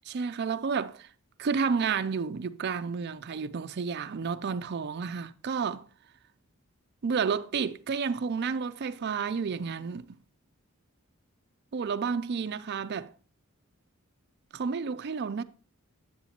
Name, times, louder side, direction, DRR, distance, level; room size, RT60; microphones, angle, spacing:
voice 1, 0.1-1.1 1.4-5.9 7.0-10.2 11.7-13.1 14.5-15.4, right 5 dB, 50° right, 0.4 m, -31 dB
10.0 x 7.8 x 2.9 m
head